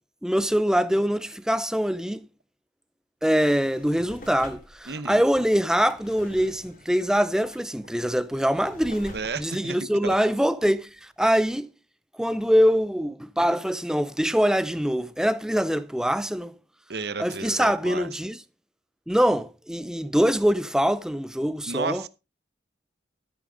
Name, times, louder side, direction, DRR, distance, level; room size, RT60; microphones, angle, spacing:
voice 1, 0.2-2.3 3.2-11.7 12.2-16.5 17.2-18.4 19.1-22.0, equal, 5° right, 0.5 m, -24 dB
Drawer open or close, 3.3-11.0 11.5-11.6, left 1 dB, 50° left, 2.7 m, -48 dB
voice 2, 4.9-5.2 9.1-9.8 10.0-10.2 16.9-18.1 21.7-22.1, right 4 dB, 70° right, 0.8 m, -32 dB
13.0 x 8.6 x 3.9 m
head